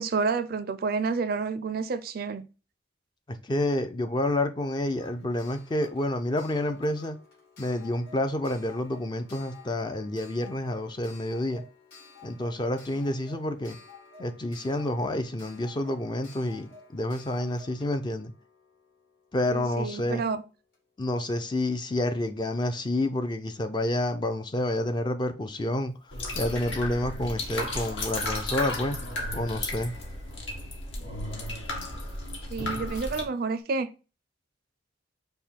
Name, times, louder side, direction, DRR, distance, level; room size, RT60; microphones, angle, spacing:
voice 1, 0.0-2.4 19.5-20.4 32.5-33.9, right 4 dB, 50° right, 0.4 m, -29 dB
voice 2, 3.4-7.2 7.6-11.6 12.2-13.8 14.2-18.3 19.3-20.2 21.0-25.9 26.4-29.0 29.3-29.9, left 1 dB, 25° left, 0.4 m, -29 dB
Clock, 5.0-19.6 20.7-20.8 21.1-21.2, left 4 dB, 55° left, 2.4 m, -52 dB
sound 1, 26.1-33.2, left 2 dB, 70° left, 1.4 m, -34 dB
5.4 x 2.1 x 4.4 m
head